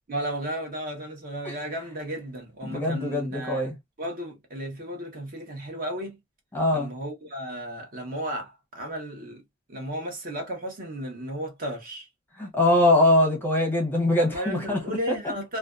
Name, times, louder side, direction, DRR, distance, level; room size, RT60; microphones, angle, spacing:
voice 1, 0.1-3.7 4.0-6.2 6.7-9.4 9.7-12.1 14.2-15.6, equal, 40° right, 0.8 m, -34 dB
voice 2, 2.6-3.7 6.5-6.9 12.4-14.8 15.1-15.2, left 1 dB, 10° left, 0.7 m, -22 dB
2.4 x 2.2 x 2.3 m
head